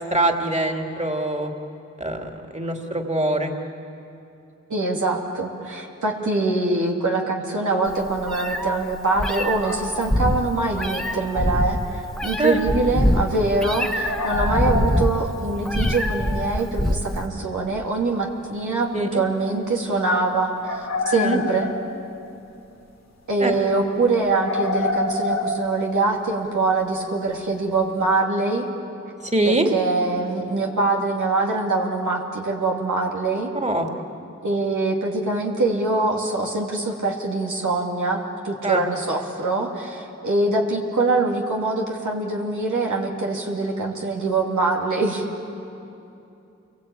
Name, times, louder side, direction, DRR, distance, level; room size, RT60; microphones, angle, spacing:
voice 1, 0.0-1.5 2.0-3.5 12.4-12.6 18.9-19.2 21.1-21.4 23.4-23.5 29.2-29.7 33.5-33.9 38.6-38.8, right 1 dB, 25° right, 3 dB, 2.7 m, -23 dB
voice 2, 4.7-21.7 23.3-28.6 29.4-33.5 34.4-45.2, right 3 dB, 90° right, -2 dB, 2.9 m, -24 dB
Meow, 7.9-17.3, equal, ahead, 1.6 m, -24 dB
sound 1, 9.6-10.0 11.5-11.6 14.0-15.6 19.0-19.1 20.6-22.4 24.2-26.6, left 2 dB, 60° left, 2.3 m, -28 dB
28.0 x 22.5 x 8.7 m, 2.7 s
cardioid pair, 45°, 29 cm